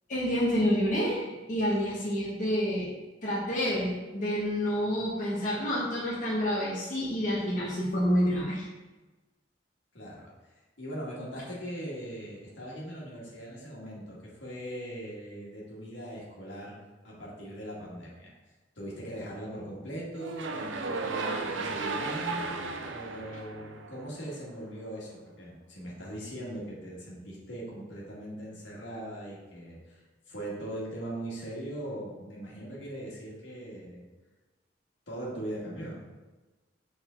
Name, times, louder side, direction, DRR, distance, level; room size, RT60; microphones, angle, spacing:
voice 1, 0.1-2.9 3.2-8.7, equal, 45° left, -7 dB, 1.4 m, -28 dB
voice 2, 9.9-10.3 10.8-16.7 17.0-18.3 18.8-22.4 22.9-30.0 30.3-34.0 35.1-36.0, right 1 dB, 75° left, -5 dB, 2.0 m, -40 dB
sound 1, 20.2-24.4, right 3 dB, 85° right, 0.6 m, -34 dB
7.0 x 4.2 x 3.8 m, 1.2 s
head